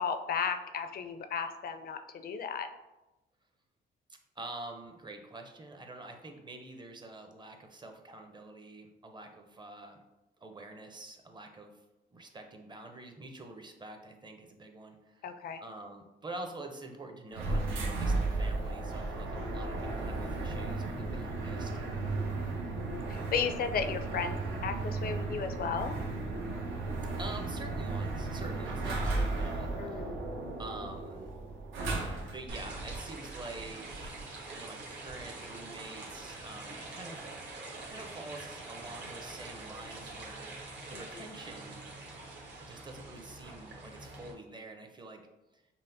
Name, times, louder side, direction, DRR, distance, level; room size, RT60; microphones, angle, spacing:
voice 1, 0.0-2.7 15.2-15.6 19.3-19.9 21.9-22.4 22.8-26.0 29.8-30.2 40.9-41.0, left 6 dB, 50° left, 8 dB, 0.4 m, -35 dB
voice 2, 4.4-10.0 10.4-11.7 12.1-15.3 15.6-21.7 27.2-30.2 30.6-31.3 32.2-37.2 37.5-41.8 42.6-45.2 45.5-45.6, right 2 dB, 20° right, 4 dB, 0.6 m, -46 dB
sound 1, 17.3-32.5, right 3 dB, 80° right, 0.7 m, -34 dB
sound 2, 32.5-44.3, right 2 dB, 65° right, 1.1 m, -44 dB
5.5 x 2.0 x 2.6 m, 1.0 s
cardioid pair, 90°, 20 cm